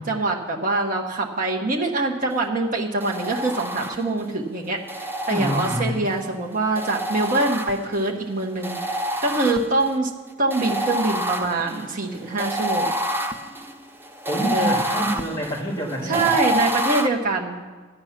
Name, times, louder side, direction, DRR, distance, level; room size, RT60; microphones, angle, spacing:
voice 1, 0.1-10.1 10.4-12.9 14.5-14.9 16.0-17.6, right 2 dB, 40° right, -1 dB, 1.1 m, -24 dB
sound 1, 3.0-4.3 4.9-6.2 6.7-8.1 8.6-9.9 10.5-17.1, equal, 10° right, 0.5 m, -28 dB
voice 2, 5.3-6.0 14.3-16.3, right 1 dB, 20° left, -4 dB, 1.7 m, -27 dB
13.0 x 9.6 x 5.9 m, 1.4 s
head